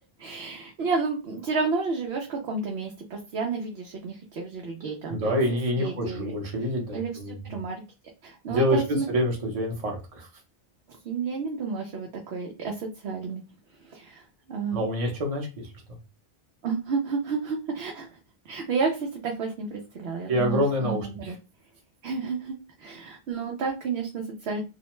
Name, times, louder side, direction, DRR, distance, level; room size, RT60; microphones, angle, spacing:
voice 1, 0.2-5.3 5.8-6.3 6.9-7.8 8.2-9.1 11.0-13.4 13.9-14.2 14.5-14.8 16.6-18.1 18.5-21.4 22.0-24.6, right 4 dB, 75° right, 1 dB, 0.9 m, -31 dB
voice 2, 5.1-7.4 8.5-10.3 14.7-15.7 20.3-21.3, equal, 40° right, 0 dB, 0.8 m, -27 dB
2.4 x 2.2 x 2.9 m, 0.29 s
omnidirectional pair, 1.1 m